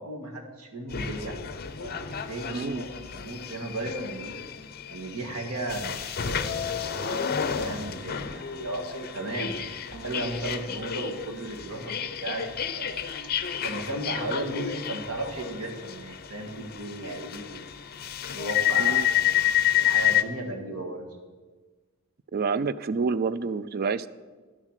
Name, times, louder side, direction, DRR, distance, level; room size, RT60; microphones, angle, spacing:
voice 1, 0.0-1.4 1.8-4.4 4.9-9.5 9.9-13.1 13.6-17.7 18.3-19.4 19.7-21.0, right 2 dB, 85° right, 2 dB, 1.9 m, -35 dB
sound 1, 0.9-20.2, left 10 dB, 45° left, 0.6 m, -30 dB
voice 2, 2.5-2.8 18.8-19.1 22.3-24.1, right 5 dB, 45° right, 16 dB, 0.4 m, -28 dB
11.0 x 7.3 x 6.5 m, 1.4 s
head